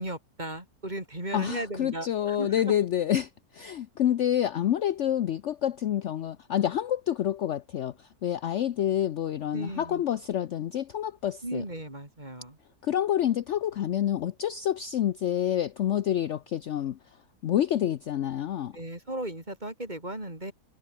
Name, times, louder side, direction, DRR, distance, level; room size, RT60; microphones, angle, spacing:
voice 1, 0.0-2.7 9.5-10.0 11.4-12.6 18.7-20.5, right 1 dB, 30° right, 5.4 m, -36 dB
voice 2, 1.3-11.6 12.8-17.0 17.4-18.7, left 11 dB, 60° left, 0.9 m, -28 dB
omnidirectional pair, 1.6 m